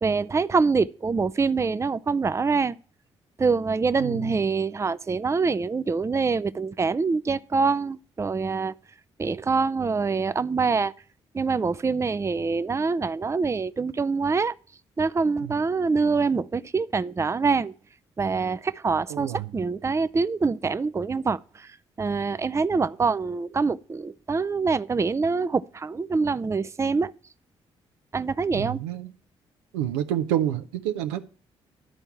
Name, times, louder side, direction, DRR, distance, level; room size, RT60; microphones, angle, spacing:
voice 1, 0.0-2.8 3.4-8.7 9.2-10.9 11.3-14.5 15.0-17.7 18.2-27.1 28.1-28.8, right 4 dB, 20° right, 0.5 m, -25 dB
voice 2, 4.0-4.3 15.4-15.5 19.1-19.4 28.5-29.1 29.7-31.2, right 11 dB, 80° right, 0.6 m, -28 dB
11.0 x 4.4 x 7.2 m
hypercardioid pair, 40°, 14 cm